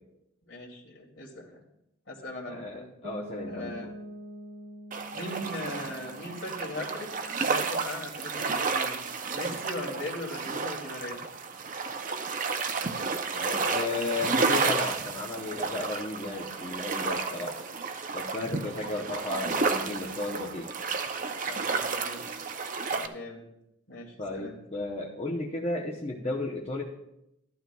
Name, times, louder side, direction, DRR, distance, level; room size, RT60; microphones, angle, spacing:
voice 1, 0.4-1.5 2.1-2.9 3.4-3.9 5.1-7.1 7.4-8.9 9.3-11.2 21.2-22.2 22.9-23.5 23.9-24.6, left 1 dB, 60° left, -1 dB, 2.4 m, -39 dB
voice 2, 2.5-3.9 13.3-17.6 18.1-20.7 24.2-26.8, left 2 dB, 30° left, -2 dB, 0.7 m, -34 dB
Piano, 3.0-8.7, equal, 70° right, 2.5 m, -46 dB
sound 1, 4.9-23.1, right 4 dB, 40° right, 0.5 m, -31 dB
14.0 x 11.5 x 2.3 m, 0.85 s
head